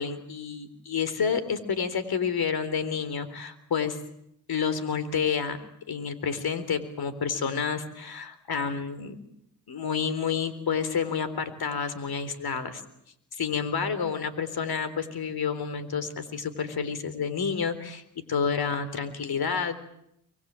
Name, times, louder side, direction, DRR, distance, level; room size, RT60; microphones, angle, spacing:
voice 1, 0.0-4.0 4.5-5.6 5.9-9.2 9.7-12.8 13.4-18.0 18.3-19.8, left 6 dB, 60° left, 13 dB, 3.9 m, -29 dB
24.5 x 22.5 x 9.0 m, 0.75 s
supercardioid pair, 55°, 42 cm